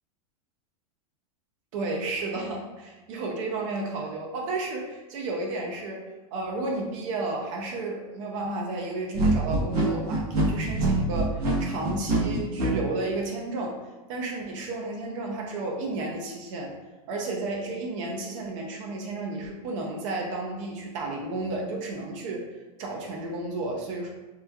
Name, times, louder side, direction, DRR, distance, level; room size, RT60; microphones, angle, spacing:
voice 1, 1.7-6.0 6.3-13.8 14.1-16.7 17.1-22.4 22.8-24.1, right 2 dB, 55° right, 0 dB, 0.5 m, -32 dB
sound 1, 9.1-12.7, right 2 dB, 80° right, 0.9 m, -24 dB
3.0 x 2.3 x 2.2 m, 1.1 s
supercardioid pair, 135°, 19 cm